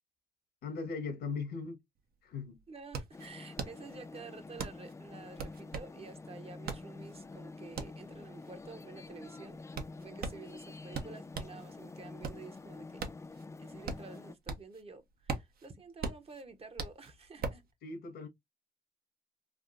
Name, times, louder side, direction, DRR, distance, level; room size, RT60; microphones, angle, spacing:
voice 1, 0.6-1.8 2.2-2.6 17.8-18.3, left 4 dB, 85° left, 1.2 m, -38 dB
sound 1, 2.0-2.1 2.3-11.6 12.0-14.8 15.1-17.7, right 4 dB, 70° right, 0.8 m, -41 dB
voice 2, 2.7-9.7 10.0-13.0 13.6-17.6, right 4 dB, 35° right, 0.8 m, -50 dB
sound 2, 3.1-14.4, left 3 dB, 15° left, 0.4 m, -48 dB
3.5 x 2.5 x 2.4 m
cardioid pair, 80°, 16 cm